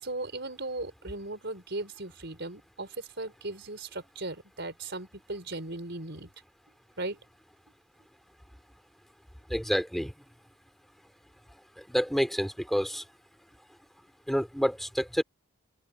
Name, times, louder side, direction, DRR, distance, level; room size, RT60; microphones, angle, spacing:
voice 1, 0.0-6.3 7.0-7.2, right 2 dB, 55° right, 5.0 m, -37 dB
voice 2, 9.5-10.1 11.8-13.0 14.3-15.2, equal, ahead, 3.1 m, -28 dB
open air
head